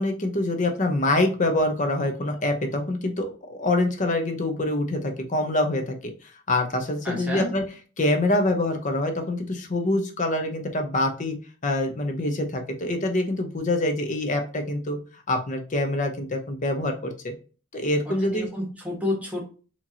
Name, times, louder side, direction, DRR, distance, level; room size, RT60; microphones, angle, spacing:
voice 1, 0.0-6.1 6.5-7.6 8.0-11.4 11.6-15.0 15.3-17.3 17.7-18.5, left 1 dB, 40° left, 5 dB, 0.8 m, -25 dB
voice 2, 7.0-7.5 18.1-19.4, left 1 dB, 5° right, -2 dB, 1.2 m, -30 dB
4.3 x 3.0 x 2.7 m, 0.36 s
head